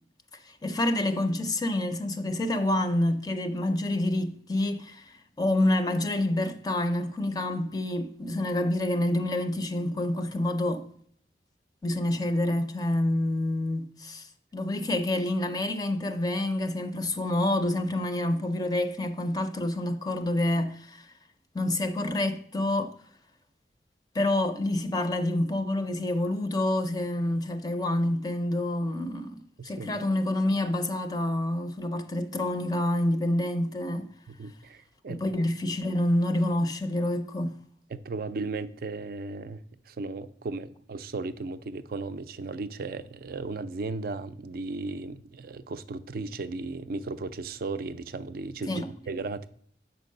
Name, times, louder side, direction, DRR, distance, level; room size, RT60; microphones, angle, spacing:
voice 1, 0.5-10.8 11.8-21.1 21.5-22.9 24.1-34.1 35.1-37.6 48.7-48.9, left 1 dB, 20° left, 0.5 m, -28 dB
voice 2, 29.6-30.0 34.3-35.2 37.9-49.5, right 3 dB, 55° right, 0.4 m, -36 dB
5.8 x 4.5 x 6.5 m
head